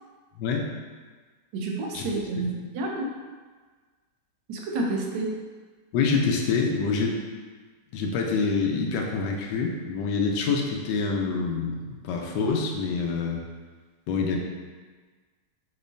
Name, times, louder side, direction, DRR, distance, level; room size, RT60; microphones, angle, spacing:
voice 1, 0.4-0.7 1.9-2.1 2.4-2.5 5.9-7.2 7.9-13.4 14.1-14.4, left 4 dB, 80° left, 1 dB, 1.2 m, -26 dB
voice 2, 1.5-3.1 4.5-5.4, right 2 dB, 90° right, 0 dB, 1.4 m, -29 dB
6.2 x 2.9 x 2.6 m, 1.4 s
omnidirectional pair, 1.9 m